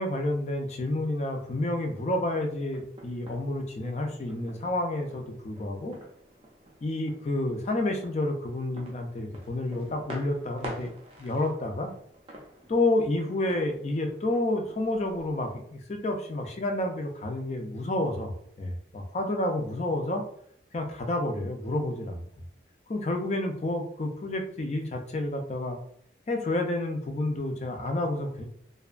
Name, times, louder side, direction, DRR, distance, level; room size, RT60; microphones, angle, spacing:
voice 1, 0.0-6.0 6.8-10.9 11.2-11.9 12.7-20.2 20.7-22.2 22.9-25.8 26.3-28.4, left 1 dB, 35° left, 4 dB, 0.4 m, -29 dB
sound 1, 0.7-15.6, right 1 dB, 30° right, 0.4 m, -49 dB
2.6 x 2.2 x 2.4 m, 0.65 s
head